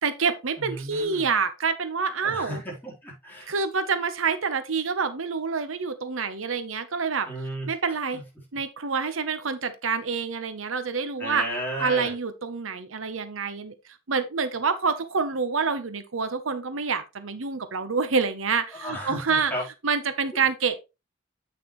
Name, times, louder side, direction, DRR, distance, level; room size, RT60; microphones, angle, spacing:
voice 1, 0.0-2.6 3.5-7.3 7.7-8.2 8.5-11.4 11.8-13.7 14.1-19.5 19.8-20.8, right 5 dB, 90° right, 1.0 m, -27 dB
voice 2, 0.6-1.3 2.2-3.5 7.3-7.7 8.1-8.2 11.2-12.1 18.7-19.6, equal, 10° left, 3.9 m, -34 dB
8.8 x 6.0 x 3.1 m
head